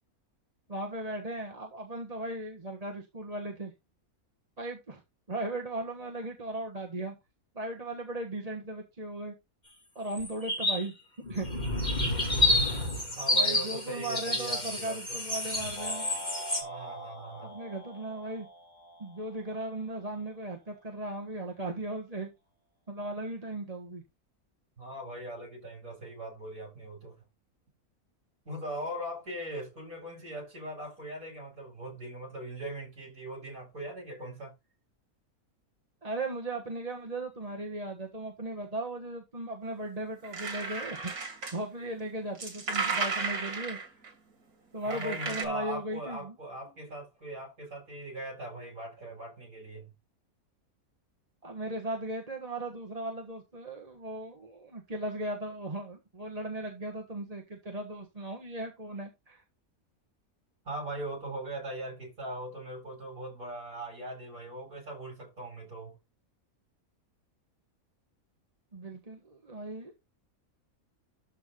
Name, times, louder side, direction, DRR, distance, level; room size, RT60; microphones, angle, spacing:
voice 1, 0.7-3.7 4.6-5.0 5.3-7.1 7.5-9.3 9.9-10.9 11.3-11.5 13.3-16.1 17.4-18.5 19.0-22.3 22.9-24.0 36.0-43.8 44.7-46.3 51.4-59.4 68.7-69.9, right 1 dB, 25° right, 1.5 m, -37 dB
sound 1, 10.1-10.8 11.2-16.6, left 1 dB, 30° left, 3.1 m, -29 dB
voice 2, 13.2-15.2 16.6-17.5 24.8-27.2 28.5-34.5 44.8-49.9 60.6-66.0, right 1 dB, 70° right, 7.4 m, -40 dB
sound 2, 15.8-20.1, equal, 60° left, 3.0 m, -45 dB
sound 3, 40.2-41.6 42.4-44.1 44.9-45.5, right 4 dB, 90° right, 2.6 m, -34 dB
12.5 x 4.6 x 3.8 m
omnidirectional pair, 1.5 m